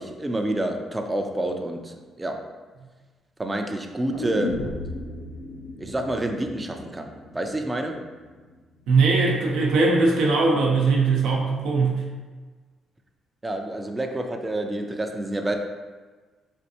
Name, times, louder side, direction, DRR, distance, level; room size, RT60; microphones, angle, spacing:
voice 1, 0.0-2.4 3.4-4.5 5.8-8.0 13.4-15.6, right 1 dB, 15° right, 3 dB, 0.4 m, -28 dB
sound 1, 4.1-8.2 8.5-8.6, left 2 dB, 80° left, 0.6 m, -35 dB
voice 2, 8.9-12.0, right 3 dB, 85° right, -2 dB, 0.6 m, -20 dB
4.3 x 2.5 x 2.7 m, 1.4 s
cardioid pair, 90°, 0 cm